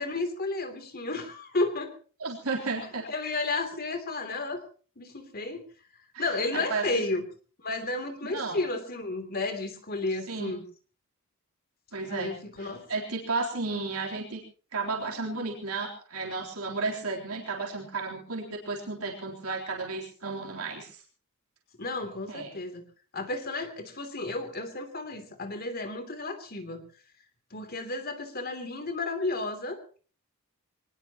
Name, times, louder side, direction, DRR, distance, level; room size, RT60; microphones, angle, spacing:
voice 1, 0.0-1.9 3.1-4.6 5.0-5.6 6.2-7.2 7.6-10.6 12.1-12.9 21.8-22.8 23.1-26.8 27.5-29.8, left 2 dB, 45° left, 7 dB, 3.1 m, -32 dB
voice 2, 2.2-3.0 6.1-7.1 8.3-8.6 10.3-10.5 11.9-14.4 14.7-21.0 22.3-22.5, right 3 dB, 90° right, -1 dB, 3.6 m, -33 dB
24.0 x 19.5 x 3.0 m, 0.39 s
head